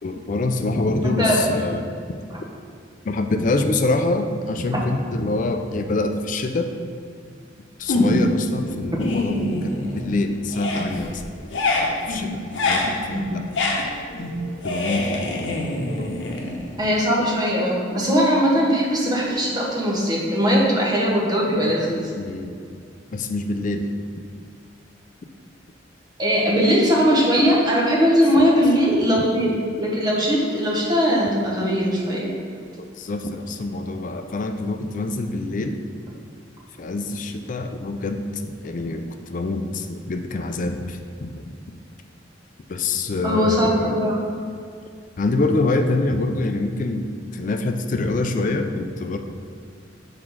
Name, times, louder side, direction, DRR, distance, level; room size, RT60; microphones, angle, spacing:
voice 1, 0.0-1.9 3.0-6.7 7.8-13.4 14.6-15.5 16.0-16.1 22.2-22.5 23.1-23.9 28.4-28.5 29.2-29.3 33.0-35.8 36.8-38.2 38.5-41.4 42.7-44.0 45.2-49.2, left 2 dB, 45° left, 6 dB, 0.4 m, -25 dB
voice 2, 1.0-1.4 2.3-2.4 16.8-22.1 26.2-32.3 43.2-44.1, equal, 20° right, -4 dB, 1.0 m, -20 dB
sound 1, 7.9-8.4 8.8-10.2 10.5-17.0, left 2 dB, 90° left, 0.8 m, -25 dB
5.9 x 3.7 x 4.7 m, 2.2 s
head